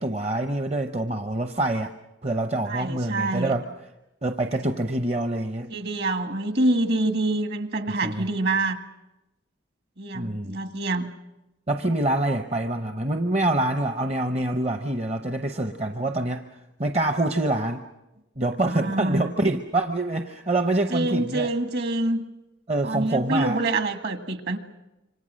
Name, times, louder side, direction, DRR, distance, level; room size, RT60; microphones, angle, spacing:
voice 1, 0.0-1.9 2.2-3.7 4.2-5.7 8.0-8.2 10.1-10.6 11.7-16.4 16.8-17.8 18.4-21.5 22.7-23.6, right 2 dB, 30° right, 7 dB, 0.8 m, -25 dB
voice 2, 2.6-3.5 5.7-8.8 10.0-11.1 18.6-19.3 20.9-22.2 22.8-24.6, right 2 dB, 55° right, 8 dB, 1.6 m, -26 dB
27.0 x 25.0 x 6.4 m, 0.97 s
head